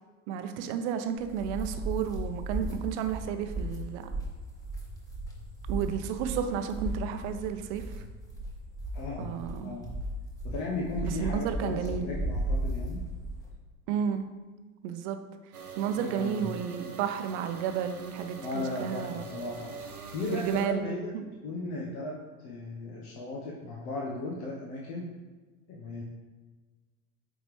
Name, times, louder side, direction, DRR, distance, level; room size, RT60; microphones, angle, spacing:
voice 1, 0.3-4.1 5.7-8.0 9.2-9.7 11.0-12.1 13.9-14.3 14.8-15.2 15.8-19.2 20.3-20.8 21.1-21.2, right 8 dB, 50° right, 8 dB, 0.8 m, -32 dB
sound 1, 1.2-13.5, right 1 dB, 10° left, 1.6 m, -35 dB
voice 2, 8.9-9.3 9.6-9.9 10.4-13.0 16.0-16.4 18.4-19.7 20.1-21.0 21.4-22.1 22.4-25.1 25.7-26.0, left 2 dB, 50° left, -3 dB, 1.2 m, -36 dB
sound 2, 15.5-20.7, right 4 dB, 90° right, 0.8 m, -44 dB
9.0 x 4.0 x 3.2 m, 1.3 s
figure-of-eight pair, 75°, 43 cm